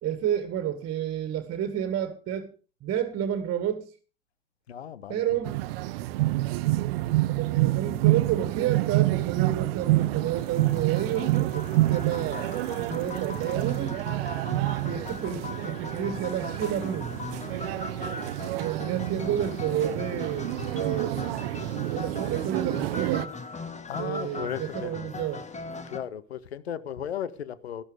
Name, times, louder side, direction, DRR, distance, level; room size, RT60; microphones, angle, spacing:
voice 1, 0.0-2.5 2.8-3.9 5.1-5.6 7.3-12.5 12.7-14.1 14.8-17.1 18.6-21.5 21.9-23.3 24.0-25.5, right 10 dB, 45° right, 1.8 m, -30 dB
voice 2, 4.7-5.2 23.9-25.1 25.9-27.8, left 9 dB, 85° left, 0.8 m, -35 dB
sound 1, 5.4-23.2, right 18 dB, 70° right, 0.7 m, -28 dB
sound 2, 9.8-26.0, left 3 dB, 20° left, 1.7 m, -40 dB
13.0 x 12.0 x 4.9 m
figure-of-eight pair, 60°, 31 cm